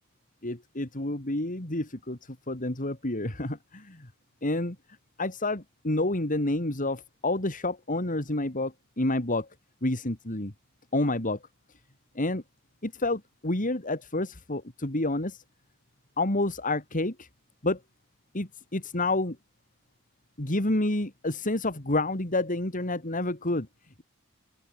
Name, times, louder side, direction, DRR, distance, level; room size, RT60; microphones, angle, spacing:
voice 1, 0.4-4.1 4.4-4.8 5.2-9.5 9.8-10.5 10.9-11.4 12.1-12.4 12.8-15.4 16.2-17.3 17.6-17.8 18.3-19.4 20.4-23.7, left 2 dB, 40° left, 3.0 m, -29 dB
open air
head